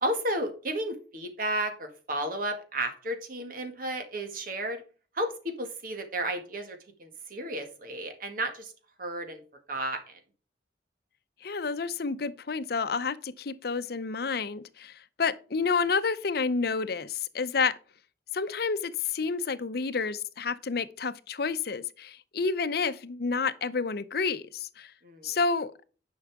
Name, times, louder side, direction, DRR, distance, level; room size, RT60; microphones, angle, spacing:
voice 1, 0.0-4.8 5.2-8.7 9.0-9.4 9.7-10.2 25.0-25.4, right 1 dB, 55° right, 1.9 m, -33 dB
voice 2, 11.4-17.8 18.3-24.9 25.2-25.9, left 4 dB, 60° left, 0.7 m, -30 dB
10.5 x 5.6 x 3.6 m
head